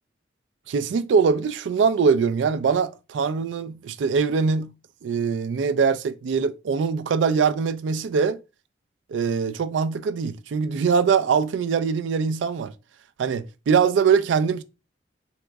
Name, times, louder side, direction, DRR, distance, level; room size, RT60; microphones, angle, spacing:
voice 1, 0.7-4.7 5.0-8.4 9.1-12.7 13.2-14.6, right 5 dB, 85° right, 0.3 m, -22 dB
3.6 x 2.9 x 2.2 m
head